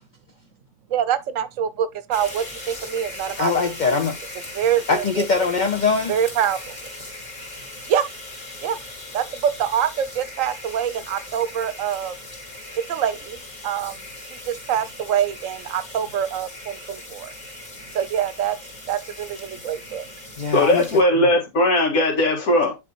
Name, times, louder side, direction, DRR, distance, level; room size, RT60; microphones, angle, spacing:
voice 1, 0.9-3.7 4.5-5.2 6.1-6.7 7.9-8.0 8.6-8.8 9.1-12.1 12.9-13.9 14.3-17.3 17.9-18.6 18.9-20.0, right 9 dB, 70° right, 1.0 m, -25 dB
sound 1, 2.1-21.0, left 2 dB, 30° left, 2.0 m, -39 dB
voice 2, 3.4-4.2 4.9-6.2 20.4-20.8 21.1-21.3, left 4 dB, 45° left, 0.6 m, -22 dB
voice 3, 20.5-22.8, left 1 dB, 75° left, 2.2 m, -18 dB
9.7 x 4.1 x 3.0 m
omnidirectional pair, 1.5 m